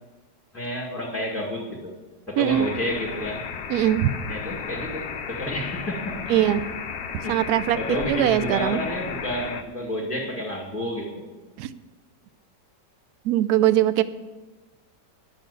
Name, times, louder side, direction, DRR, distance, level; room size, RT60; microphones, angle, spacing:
voice 1, 0.5-1.9 2.3-3.5 4.3-6.2 7.2-7.4 7.7-11.3, equal, ahead, -2 dB, 1.8 m, -30 dB
voice 2, 2.4-2.7 3.7-4.1 6.3-6.6 7.3-7.8 8.1-8.8 11.6-11.7 13.2-14.0, right 12 dB, 70° right, 13 dB, 1.0 m, -21 dB
sound 1, 2.5-9.6, left 6 dB, 70° left, 0.6 m, -34 dB
11.0 x 6.5 x 8.4 m, 1.3 s
omnidirectional pair, 1.9 m